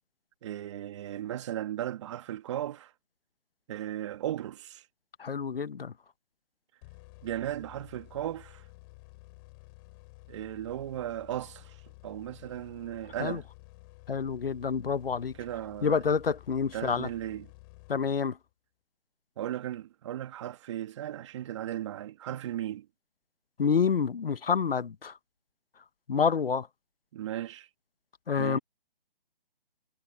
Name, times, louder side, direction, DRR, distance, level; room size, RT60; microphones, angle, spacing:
voice 1, 0.4-2.9 3.7-4.9 7.2-8.6 10.3-11.8 12.0-13.5 15.4-16.0 16.7-17.5 19.4-22.9 27.1-27.7 28.4-28.6, right 12 dB, 30° right, 2.3 m, -36 dB
voice 2, 5.2-5.9 13.2-13.4 14.1-15.3 15.8-17.1 17.9-18.4 23.6-25.1 26.1-26.7 28.3-28.6, left 6 dB, 65° left, 1.2 m, -28 dB
sound 1, 6.8-18.5, left 25 dB, 20° left, 4.8 m, -52 dB
figure-of-eight pair, 155°, 31 cm